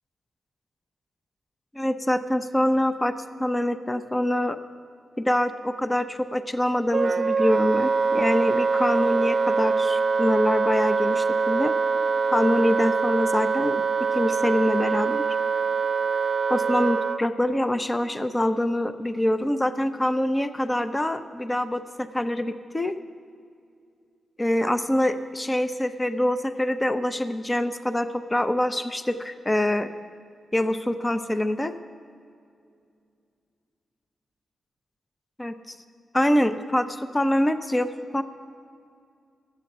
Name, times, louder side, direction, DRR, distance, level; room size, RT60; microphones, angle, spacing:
voice 1, 1.7-3.1 3.4-4.6 5.2-11.7 12.3-13.8 14.1-15.2 16.5-22.9 24.4-29.9 30.5-31.7 35.4-35.8 36.1-36.9 37.1-38.2, left 1 dB, 15° left, 10 dB, 0.5 m, -25 dB
Wind instrument woodwind instrument, 6.9-17.2, right 4 dB, 45° right, 0.3 m, -24 dB
11.5 x 8.5 x 7.8 m, 2.4 s
cardioid pair, 95°, 0 cm